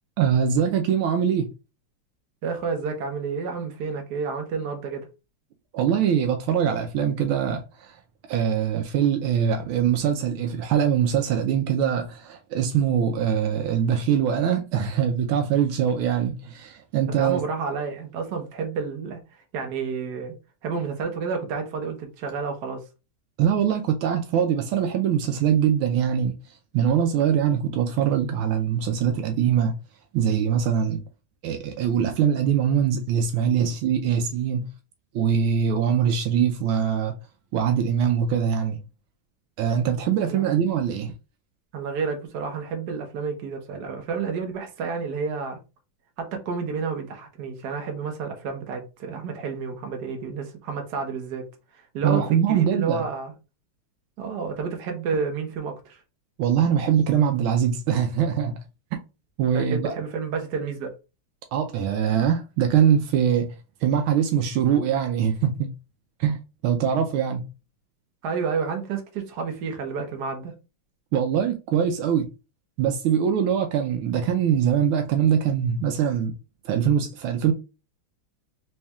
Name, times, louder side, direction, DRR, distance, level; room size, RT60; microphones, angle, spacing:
voice 1, 0.2-1.5 5.7-8.0 8.3-17.4 23.4-26.3 26.7-29.8 30.1-31.0 31.4-34.7 35.1-37.1 37.5-38.8 39.6-41.1 52.0-53.0 56.4-58.6 59.4-60.0 61.5-63.5 63.8-65.7 66.2-67.5 71.1-72.3 72.8-76.3 76.6-77.5, right 8 dB, 80° right, 1.4 m, -23 dB
voice 2, 2.4-5.1 17.2-19.2 19.5-20.3 20.6-22.8 33.6-33.7 40.2-40.6 41.7-45.6 46.2-51.4 51.9-53.3 54.2-56.0 59.5-60.9 68.2-70.5, right 5 dB, 60° right, 1.3 m, -30 dB
4.2 x 3.2 x 2.3 m
omnidirectional pair, 2.3 m